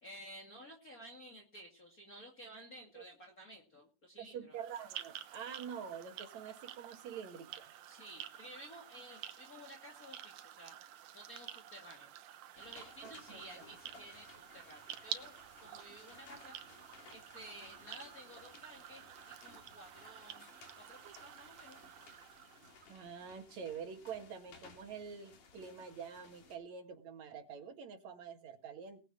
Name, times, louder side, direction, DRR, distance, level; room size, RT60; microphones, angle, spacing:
voice 1, 0.0-4.6 7.9-12.1 12.5-20.4 20.8-21.8, right 1 dB, 30° left, 0 dB, 2.5 m, -54 dB
voice 2, 4.2-7.7 13.0-13.4 22.9-29.0, right 7 dB, 65° right, 5 dB, 3.1 m, -46 dB
sound 1, 4.5-23.0, right 11 dB, 85° right, 2.5 m, -50 dB
sound 2, 12.5-26.6, left 5 dB, 80° left, 4.1 m, -60 dB
20.0 x 9.1 x 4.3 m, 0.34 s
omnidirectional pair, 3.6 m